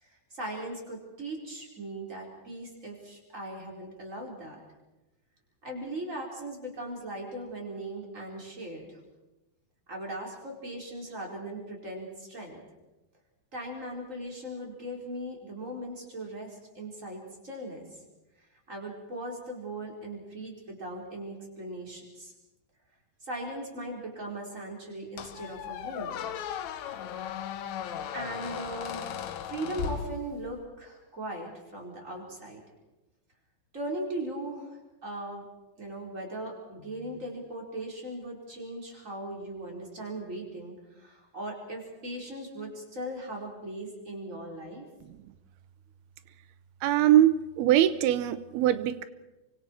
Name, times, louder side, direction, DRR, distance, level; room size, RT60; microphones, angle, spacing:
voice 1, 0.3-4.6 5.6-9.0 9.9-12.6 13.5-17.9 18.7-22.3 23.2-26.2 28.1-32.6 33.7-35.4 35.8-44.9, right 1 dB, 20° right, 0 dB, 4.6 m, -39 dB
Squeak, 25.2-30.7, left 9 dB, 70° left, 1.9 m, -37 dB
voice 2, 46.8-49.0, right 12 dB, 85° right, 13 dB, 2.9 m, -22 dB
28.5 x 24.5 x 4.6 m, 1.0 s
omnidirectional pair, 4.4 m